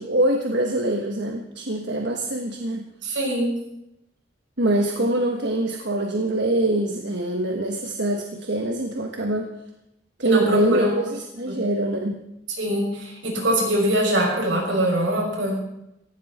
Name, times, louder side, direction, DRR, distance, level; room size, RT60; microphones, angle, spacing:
voice 1, 0.0-2.9 4.6-9.5 10.2-12.2, right 1 dB, 65° right, 2 dB, 1.4 m, -24 dB
voice 2, 3.0-3.5 10.2-10.9 11.5-11.6 12.6-15.5, equal, 85° right, -1 dB, 6.7 m, -23 dB
18.0 x 15.5 x 4.4 m, 0.84 s
head